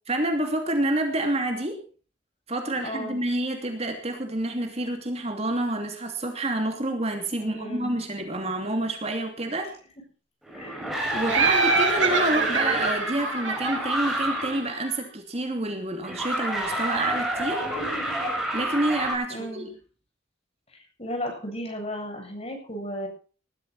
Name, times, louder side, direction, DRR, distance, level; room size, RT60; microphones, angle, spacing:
voice 1, 0.1-1.8 2.5-9.7 11.1-17.6 18.5-19.7, right 1 dB, 35° right, 4 dB, 2.8 m, -28 dB
voice 2, 2.8-3.2 7.4-7.9 10.5-10.9 11.2-11.5 19.3-19.7 20.7-23.1, equal, 35° left, 2 dB, 7.8 m, -34 dB
sound 1, 10.4-14.7 16.0-19.1, right 1 dB, ahead, 6.8 m, -29 dB
Laughter, 11.3-14.9, right 4 dB, 85° right, 6.0 m, -26 dB
20.0 x 13.0 x 4.3 m, 0.39 s
head